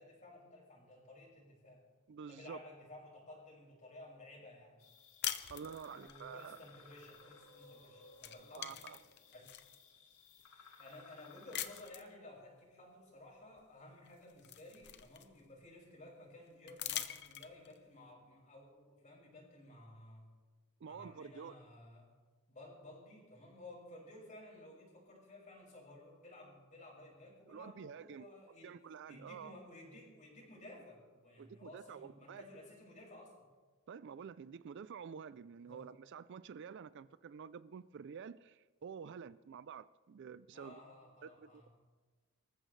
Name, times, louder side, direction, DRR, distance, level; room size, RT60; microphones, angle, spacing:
voice 1, 0.0-1.8 2.3-4.8 5.9-8.8 9.3-9.5 10.8-20.3 20.9-22.1 22.5-28.8 29.1-33.5 35.7-35.9 40.5-41.7, left 1 dB, 35° left, 5.5 m, -55 dB
voice 2, 2.1-2.6 5.5-6.6 8.6-9.0 20.8-21.5 27.5-28.3 28.6-29.6 31.4-32.4 33.9-40.8 41.2-41.7, right 6 dB, 50° right, 0.4 m, -49 dB
sound 1, 4.8-11.9, left 4 dB, 80° left, 2.1 m, -60 dB
sound 2, 5.2-6.2 7.6-7.8 8.1-9.8 10.4-10.5 11.5-12.1 13.6-13.7 14.1-15.6 16.7-17.8, left 11 dB, 50° left, 0.8 m, -43 dB
25.5 x 14.0 x 3.2 m
head